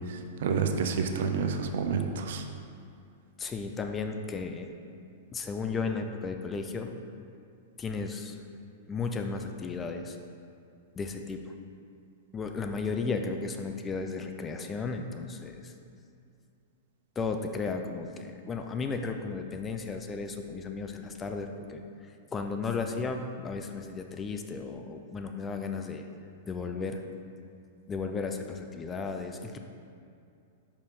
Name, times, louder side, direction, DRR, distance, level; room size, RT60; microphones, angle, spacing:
voice 1, 0.1-2.4, right 5 dB, 65° right, 6 dB, 0.5 m, -29 dB
voice 2, 3.4-4.7 5.3-6.9 7.8-8.4 8.9-10.2 11.0-11.5 12.3-15.7 17.2-26.1 26.5-27.0 27.9-29.6, left 4 dB, 20° left, 5 dB, 0.5 m, -34 dB
5.2 x 5.0 x 4.3 m, 2.5 s
hypercardioid pair, 110°, 0 cm